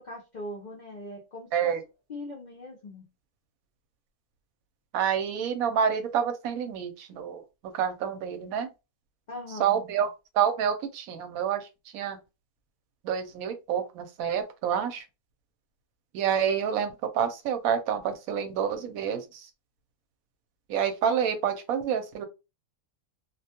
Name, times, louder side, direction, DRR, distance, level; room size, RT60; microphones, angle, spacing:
voice 1, 0.0-1.8 2.1-3.0 9.3-9.8, left 1 dB, 60° left, 0.4 m, -40 dB
voice 2, 4.9-7.4 7.7-8.7 9.6-10.1 10.3-11.7 11.9-12.2 13.0-15.0 16.1-19.5 20.7-22.3, right 8 dB, 80° right, 1.0 m, -28 dB
2.4 x 2.2 x 2.7 m
omnidirectional pair, 1.5 m